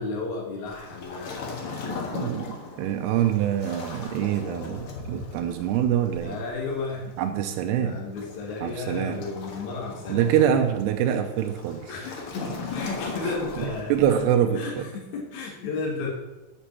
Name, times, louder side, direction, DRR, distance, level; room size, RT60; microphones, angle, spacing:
voice 1, 0.0-2.3 6.2-7.1 7.8-10.6 11.9-13.9 14.5-16.1, left 4 dB, 55° left, -2 dB, 2.4 m, -33 dB
Waves surf, 0.7-14.3, left 4 dB, 80° left, 1.2 m, -38 dB
voice 2, 2.1-6.4 7.2-8.0 8.6-9.2 10.1-11.9 13.9-14.9, right 10 dB, 85° right, 5 dB, 2.7 m, -25 dB
8.2 x 6.1 x 7.3 m, 1.1 s
omnidirectional pair, 4.7 m